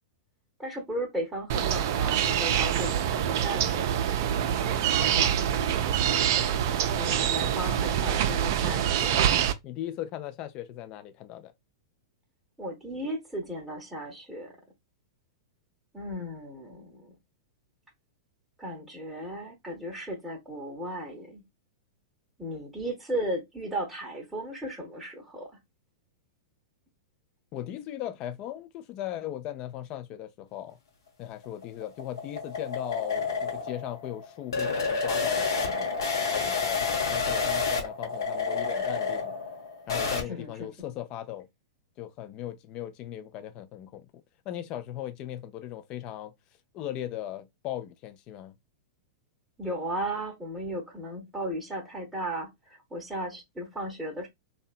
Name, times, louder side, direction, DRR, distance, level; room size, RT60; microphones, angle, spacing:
voice 1, 0.6-4.2 5.0-5.3 6.9-9.3 12.6-14.5 15.9-17.1 18.6-21.4 22.4-25.6 40.0-40.7 49.6-54.3, right 1 dB, 5° right, 0.7 m, -36 dB
sound 1, 1.5-9.5, right 9 dB, 55° right, 0.3 m, -25 dB
voice 2, 9.6-11.5 27.5-30.8 31.2-35.9 36.3-39.4 39.9-41.5 42.0-44.1 44.5-46.3 46.7-48.5, left 12 dB, 40° left, 0.3 m, -38 dB
sound 2, 31.3-40.2, left 4 dB, 75° left, 0.7 m, -29 dB
2.6 x 2.2 x 2.4 m
hypercardioid pair, 105°, 2 cm